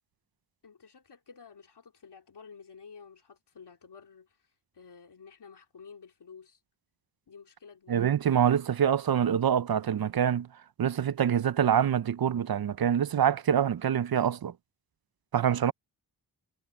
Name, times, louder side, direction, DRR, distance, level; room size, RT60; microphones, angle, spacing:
voice 1, 0.6-4.4 4.7-6.6 7.3-8.1, left 5 dB, 75° left, 3.4 m, -51 dB
voice 2, 7.9-10.5 10.8-14.5 15.3-15.7, right 9 dB, 60° right, 0.6 m, -25 dB
wide cardioid pair, 135°, 41 cm